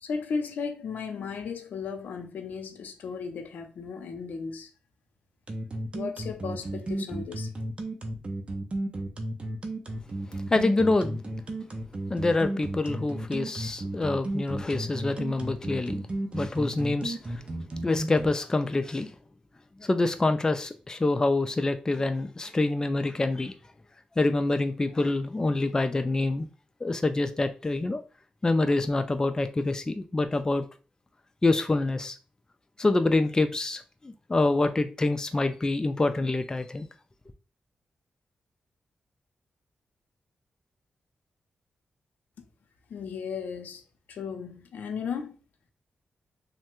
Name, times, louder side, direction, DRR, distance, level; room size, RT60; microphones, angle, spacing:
voice 1, 0.0-4.7 5.9-7.5 42.9-43.8 44.1-45.3, left 5 dB, 80° left, 0.5 m, -35 dB
sound 1, 5.5-18.3, right 1 dB, 40° right, 0.6 m, -33 dB
voice 2, 10.5-11.2 12.1-16.0 16.3-17.4 17.8-19.1 19.8-23.5 24.2-26.5 26.8-28.0 28.4-30.6 31.4-32.2 32.8-36.9, left 2 dB, 25° left, 0.3 m, -26 dB
3.2 x 2.1 x 3.0 m
cardioid pair, 60°, 3 cm